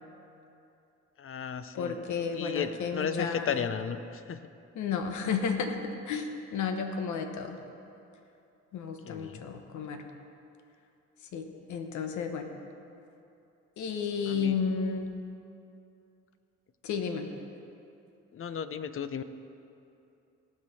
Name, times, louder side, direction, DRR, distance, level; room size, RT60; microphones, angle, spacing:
voice 1, 1.2-2.0 2.3-4.4 9.1-9.4 14.3-14.5 18.3-19.2, left 7 dB, 45° left, 12 dB, 0.7 m, -34 dB
voice 2, 1.7-3.7 4.7-5.8 6.1-7.6 8.7-10.0 11.3-12.5 13.8-15.1 16.8-17.3, left 6 dB, 75° left, 6 dB, 1.1 m, -32 dB
18.0 x 6.5 x 4.2 m, 2.7 s
supercardioid pair, 70°, 30 cm